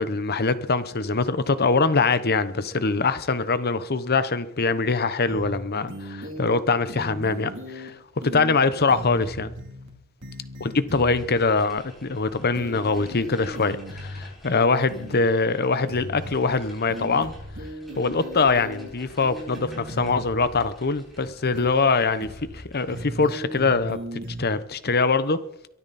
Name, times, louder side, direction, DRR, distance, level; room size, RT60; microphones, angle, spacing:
voice 1, 0.0-8.0 8.2-9.5 10.6-17.3 18.0-25.4, left 4 dB, 45° left, 1.0 m, -23 dB
sound 1, 5.3-5.6 5.9-6.6 6.9-7.9 8.2-8.6 8.9-9.9 10.2-11.2 12.5-14.2 14.9-15.2 15.9-16.6 16.9-18.9 19.2-20.6 21.5-21.9 22.2-22.6 22.9-24.4, equal, 60° right, 3.1 m, -37 dB
sound 2, 10.9-23.3, equal, ahead, 8.0 m, -50 dB
23.0 x 12.5 x 4.3 m
head